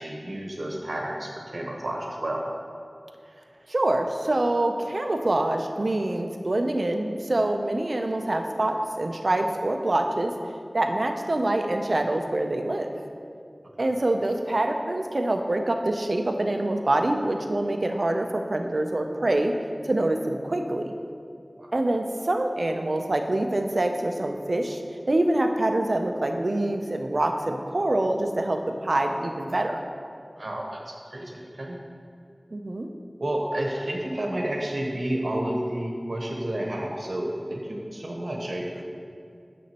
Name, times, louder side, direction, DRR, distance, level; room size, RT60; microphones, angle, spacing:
voice 1, 0.0-2.4 13.8-13.9 21.6-21.7 30.3-31.8 33.2-38.8, right 1 dB, 85° right, -1 dB, 1.0 m, -31 dB
voice 2, 3.7-10.3 10.7-12.9 13.8-19.5 19.8-20.9 21.7-24.8 25.1-29.8 32.5-32.9, right 1 dB, 70° right, 4 dB, 0.5 m, -25 dB
9.1 x 7.1 x 2.9 m, 2.4 s
wide cardioid pair, 50°, 0 cm